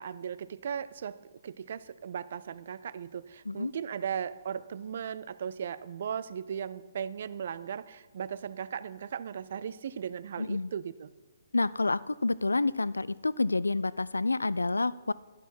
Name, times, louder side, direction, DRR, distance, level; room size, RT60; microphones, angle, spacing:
voice 1, 0.0-11.1, right 8 dB, 50° right, 17 dB, 0.5 m, -37 dB
voice 2, 10.4-10.7 11.5-15.1, left 3 dB, 75° left, 19 dB, 0.4 m, -28 dB
13.0 x 11.0 x 4.3 m, 1.2 s
figure-of-eight pair, 125°, 0 cm